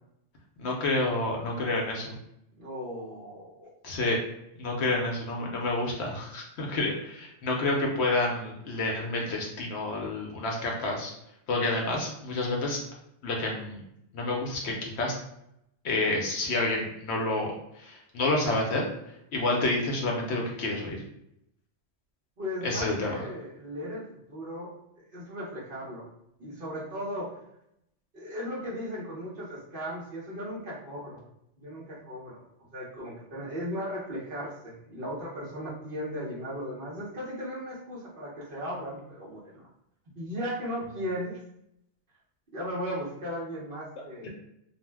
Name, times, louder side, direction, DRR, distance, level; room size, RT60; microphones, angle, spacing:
voice 1, 0.6-2.1 3.8-4.2 4.6-11.1 11.5-12.8 13.2-13.8 14.1-15.1 15.8-18.9 19.3-21.0 22.6-23.1, left 2 dB, 65° left, 0 dB, 0.8 m, -29 dB
voice 2, 2.6-3.7 22.4-26.1 26.4-27.4 28.1-31.3 31.6-32.4 32.7-39.7 40.2-41.4 42.5-44.3, equal, 50° right, -6 dB, 0.9 m, -36 dB
2.5 x 2.1 x 3.3 m, 0.79 s
omnidirectional pair, 1.3 m